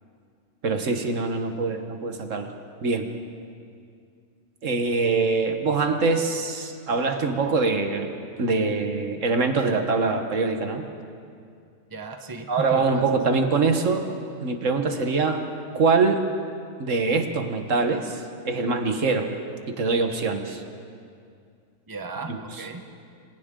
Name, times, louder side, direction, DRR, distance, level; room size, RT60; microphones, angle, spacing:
voice 1, 0.6-2.5 2.8-3.1 4.6-8.1 8.4-10.8 12.5-14.1 14.4-15.4 15.7-16.2 16.8-19.3 19.8-20.6 22.3-22.7, right 4 dB, 65° right, 6 dB, 1.6 m, -24 dB
voice 2, 11.9-13.0 21.9-22.8, right 3 dB, 15° right, 4 dB, 1.0 m, -35 dB
29.0 x 25.5 x 3.8 m, 2.3 s
omnidirectional pair, 1.4 m